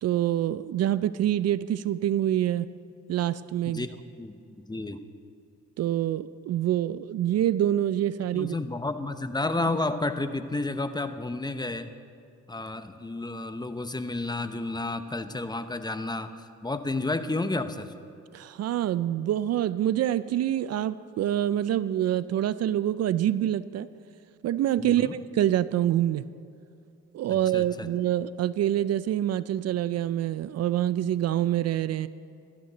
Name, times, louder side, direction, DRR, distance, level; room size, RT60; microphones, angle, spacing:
voice 1, 0.0-2.7 3.1-3.9 5.8-8.5 18.3-23.9 24.4-26.2 27.1-32.1, right 12 dB, 60° right, 16 dB, 0.4 m, -26 dB
voice 2, 3.7-5.0 8.3-11.9 12.5-16.3 16.6-17.9 24.8-25.2 27.3-27.9, left 2 dB, 15° left, 10 dB, 0.7 m, -31 dB
17.5 x 13.0 x 4.0 m, 2.6 s
cardioid pair, 90°, 30 cm